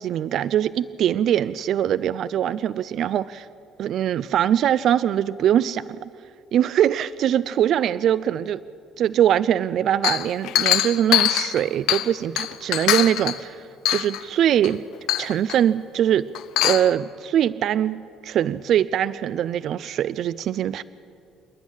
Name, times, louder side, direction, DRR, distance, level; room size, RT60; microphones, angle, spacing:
voice 1, 0.0-3.5 3.8-6.1 6.5-8.6 9.0-13.6 13.9-14.8 15.2-16.3 16.6-20.8, right 10 dB, 55° right, 0.4 m, -22 dB
Chink clink, 10.0-12.1 12.4-13.4 13.8-14.2 14.6-14.7 15.1-15.6 16.3-16.9, left 13 dB, 80° left, 0.9 m, -22 dB
27.5 x 10.5 x 10.0 m
cardioid pair, 140°, 0 cm